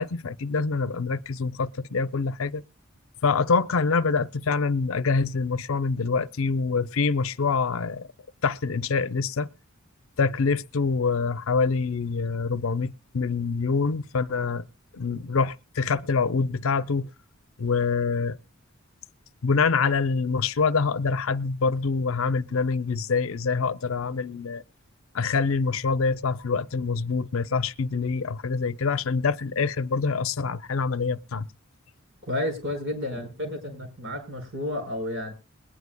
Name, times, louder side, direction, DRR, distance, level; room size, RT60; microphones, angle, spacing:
voice 1, 0.0-2.6 3.2-8.1 8.4-9.5 10.2-14.7 14.9-17.1 17.6-18.4 19.4-24.6 25.1-31.5, left 4 dB, 80° left, 0.6 m, -25 dB
voice 2, 32.2-35.3, left 1 dB, 65° right, 4.8 m, -31 dB
21.5 x 9.6 x 2.2 m
head